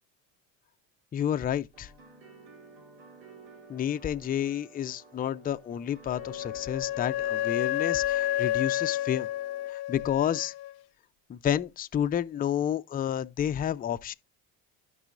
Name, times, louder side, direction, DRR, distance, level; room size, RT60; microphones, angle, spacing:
voice 1, 1.1-1.9 3.7-9.3 9.7-10.5 11.3-14.1, left 10 dB, 20° left, 0.4 m, -30 dB
sound 1, 1.7-9.7, right 5 dB, 80° right, 3.1 m, -52 dB
Wind instrument woodwind instrument, 6.1-10.7, left 14 dB, 65° left, 0.6 m, -30 dB
14.0 x 5.5 x 2.4 m
cardioid pair, 110°, 41 cm